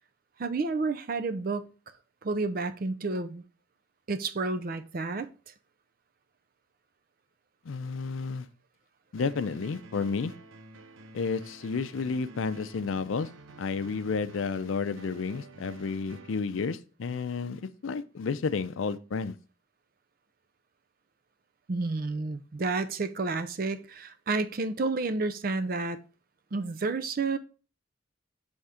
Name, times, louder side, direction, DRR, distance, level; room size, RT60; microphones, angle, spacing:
voice 1, 0.4-1.7 2.2-3.4 4.1-5.3 21.7-26.0 26.5-27.4, right 3 dB, 45° right, 0.5 m, -30 dB
voice 2, 7.7-8.5 9.1-10.3 11.1-13.3 13.6-19.4, left 5 dB, 80° left, 0.5 m, -31 dB
sound 1, 9.2-16.3, right 2 dB, 80° right, 0.7 m, -50 dB
5.6 x 3.5 x 4.9 m
head